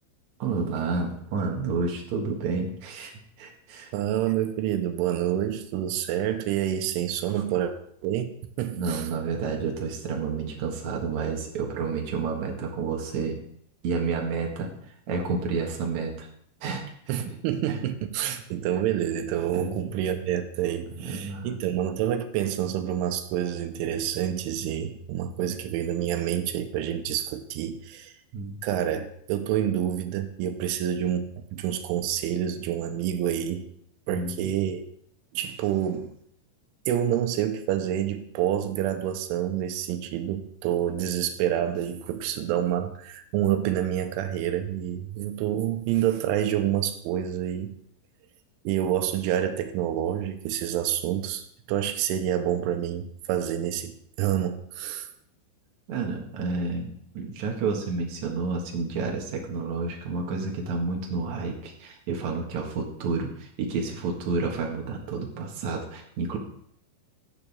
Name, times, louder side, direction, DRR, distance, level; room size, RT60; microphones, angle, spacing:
voice 1, 0.4-3.1 3.4-3.9 7.3-7.4 8.7-13.4 13.8-14.7 15.1-16.3 16.6-17.2 17.7-17.8 18.2-18.4 19.5-19.9 20.9-21.6 28.3-28.5 34.1-34.5 55.9-66.4, right 4 dB, 65° right, 0 dB, 1.9 m, -30 dB
voice 2, 3.9-7.7 8.0-8.3 8.6-9.1 17.1-28.1 28.6-33.7 34.1-34.8 35.3-36.1 36.9-47.7 48.6-55.1, right 10 dB, 90° right, 7 dB, 3.2 m, -28 dB
12.5 x 9.8 x 3.5 m, 0.67 s
omnidirectional pair, 5.7 m